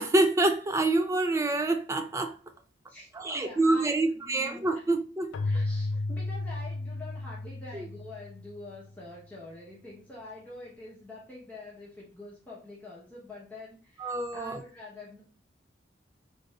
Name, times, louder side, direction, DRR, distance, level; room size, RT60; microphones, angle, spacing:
voice 1, 0.0-2.4 3.2-5.3 7.7-7.8 14.0-14.6, right 2 dB, 15° right, 0.3 m, -26 dB
voice 2, 2.9-4.9 5.4-15.2, left 2 dB, 10° left, 0.9 m, -46 dB
Keyboard (musical), 5.3-8.9, left 2 dB, 80° left, 0.4 m, -33 dB
3.8 x 2.5 x 3.2 m
head